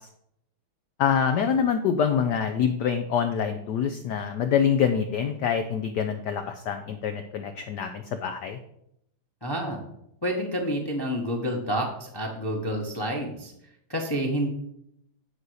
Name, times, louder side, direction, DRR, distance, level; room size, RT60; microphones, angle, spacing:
voice 1, 1.0-8.6, left 7 dB, 70° left, 7 dB, 1.0 m, -25 dB
voice 2, 9.4-9.8 10.2-13.5 13.9-14.5, equal, 15° left, 0 dB, 0.8 m, -29 dB
9.6 x 4.1 x 6.3 m, 0.76 s
omnidirectional pair, 2.3 m